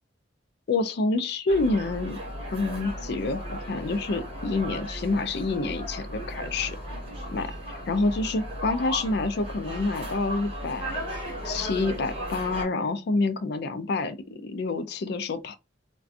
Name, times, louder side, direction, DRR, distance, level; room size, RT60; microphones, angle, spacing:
voice 1, 0.7-2.2 2.5-6.8 7.3-11.0 11.4-15.6, left 3 dB, 65° left, 0.4 m, -28 dB
sound 1, 1.5-12.6, equal, 30° right, 1.3 m, -36 dB
2.4 x 2.2 x 2.5 m
head